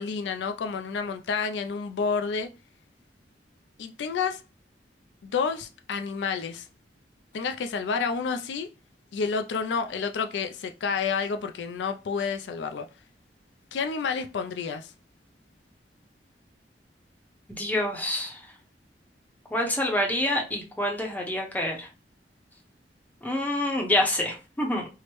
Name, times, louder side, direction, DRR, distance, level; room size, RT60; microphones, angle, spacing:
voice 1, 0.0-2.5 3.8-4.4 5.2-6.7 7.3-8.7 9.1-12.9 13.7-14.9, left 5 dB, 75° left, 0.4 m, -29 dB
voice 2, 17.5-18.4 19.5-21.9 23.2-24.9, left 1 dB, 10° left, 0.7 m, -27 dB
4.6 x 2.1 x 3.0 m
head